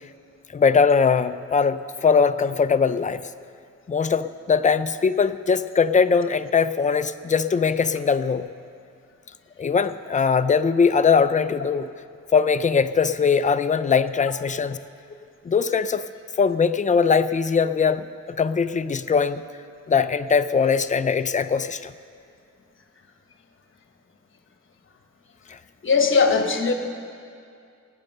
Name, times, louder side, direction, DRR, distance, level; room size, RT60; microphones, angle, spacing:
voice 1, 0.5-3.2 3.9-8.5 9.6-11.9 12.3-14.8 15.5-16.0 16.4-19.4 19.9-21.9, left 5 dB, 25° left, 11 dB, 0.4 m, -21 dB
voice 2, 25.8-26.7, left 5 dB, 45° left, 5 dB, 1.2 m, -19 dB
18.0 x 8.2 x 6.6 m, 2.4 s
wide cardioid pair, 160°, 29 cm